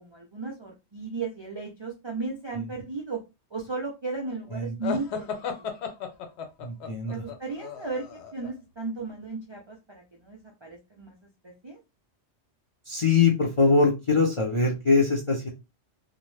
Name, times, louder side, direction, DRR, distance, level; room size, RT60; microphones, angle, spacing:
voice 1, 0.0-3.2 3.5-5.3 5.6-5.7 7.1-11.2 11.4-11.8, right 3 dB, 45° right, 0 dB, 0.3 m, -35 dB
sound 1, 4.8-8.5, left 6 dB, 70° left, 0.8 m, -35 dB
voice 2, 6.6-7.1 12.9-15.5, left 4 dB, 45° left, 0 dB, 0.4 m, -22 dB
2.6 x 2.0 x 3.1 m, 0.25 s
omnidirectional pair, 1.2 m